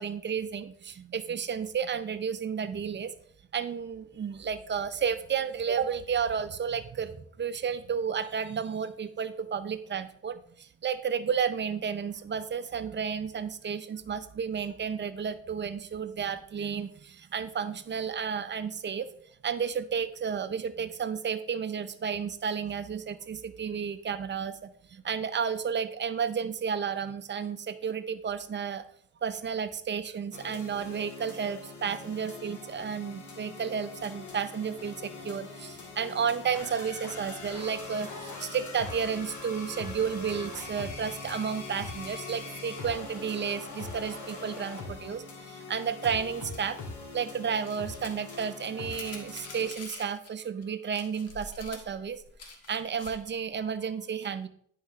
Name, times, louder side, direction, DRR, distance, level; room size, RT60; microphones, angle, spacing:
voice 1, 0.0-3.1 3.5-19.1 19.4-28.8 29.2-46.8 47.1-54.5, right 7 dB, 35° right, 12 dB, 0.6 m, -32 dB
sound 1, 30.3-49.7, left 3 dB, 70° left, 2.1 m, -42 dB
sound 2, 47.6-50.3 50.6-50.7 50.9-53.3, left 4 dB, 55° left, 1.4 m, -46 dB
10.0 x 4.8 x 3.3 m, 0.62 s
cardioid pair, 90°, 30 cm